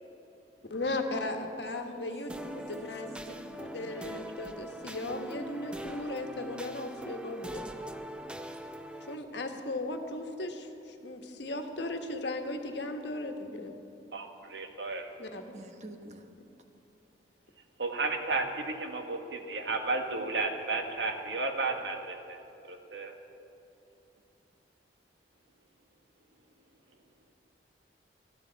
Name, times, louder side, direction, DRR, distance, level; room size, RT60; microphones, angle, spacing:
voice 1, 0.7-3.1 3.6-7.7 9.0-13.7 15.2-15.5, left 2 dB, 75° left, 4 dB, 1.4 m, -37 dB
voice 2, 1.6-3.6 15.5-16.3, right 1 dB, 40° right, 5 dB, 1.1 m, -48 dB
sound 1, 2.3-9.1, right 1 dB, 5° right, 0.5 m, -42 dB
voice 3, 14.1-15.1 17.8-22.4 22.7-23.1, right 3 dB, 80° right, 4 dB, 1.4 m, -33 dB
19.5 x 14.0 x 4.1 m, 2.9 s
head